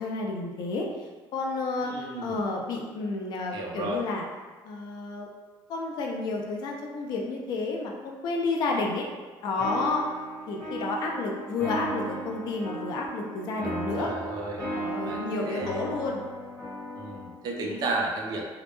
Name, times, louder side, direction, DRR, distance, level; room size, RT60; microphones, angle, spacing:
voice 1, 0.0-4.2 4.6-5.3 5.7-9.1 9.4-10.1 10.5-14.1 14.7-16.2 17.6-17.8, left 3 dB, 50° left, 0 dB, 0.4 m, -31 dB
voice 2, 1.8-2.4 3.5-4.0 14.0-14.7 15.0-15.8 17.0-18.4, right 2 dB, 45° right, 0 dB, 0.4 m, -33 dB
sound 1, 9.6-17.4, right 1 dB, 10° left, 1.3 m, -36 dB
2.1 x 2.1 x 2.9 m, 1.4 s
cardioid pair, 170°, 9 cm